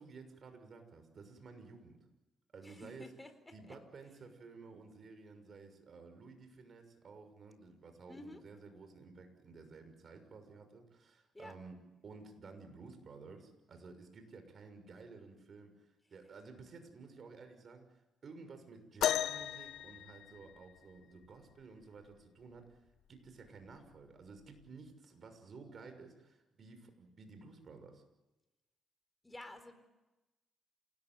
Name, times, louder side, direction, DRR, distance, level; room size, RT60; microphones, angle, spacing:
voice 1, 0.0-2.0 2.5-3.1 3.5-11.8 12.0-15.8 16.1-17.8 18.2-22.7 23.1-28.0, right 4 dB, 50° right, 7 dB, 6.3 m, -53 dB
voice 2, 2.6-3.3 3.7-3.8 8.1-8.4 11.3-11.5 29.2-29.8, left 1 dB, 15° left, 9 dB, 4.3 m, -50 dB
sound 1, 19.0-20.9 22.6-22.7 23.5-23.7 24.6-24.7, left 10 dB, 80° left, 1.4 m, -35 dB
28.0 x 19.5 x 9.3 m, 1.1 s
cardioid pair, 95°, 0 cm